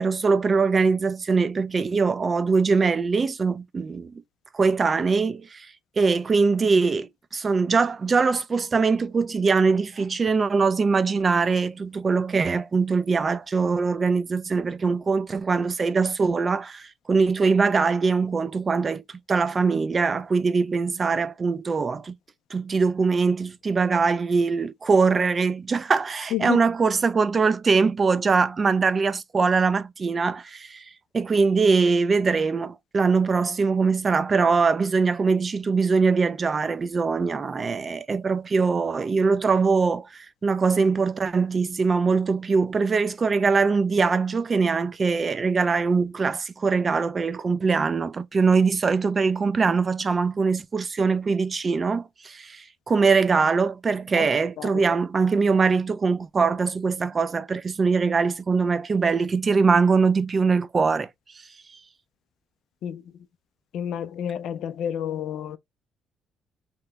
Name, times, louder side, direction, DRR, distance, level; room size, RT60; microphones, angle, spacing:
voice 1, 0.0-4.1 4.5-5.7 6.0-22.1 22.5-30.8 31.1-61.1, right 4 dB, 35° right, 0.4 m, -22 dB
voice 2, 62.8-63.3 63.7-65.6, left 10 dB, 70° left, 0.3 m, -30 dB
2.8 x 2.0 x 3.3 m
cardioid pair, 90°, 0 cm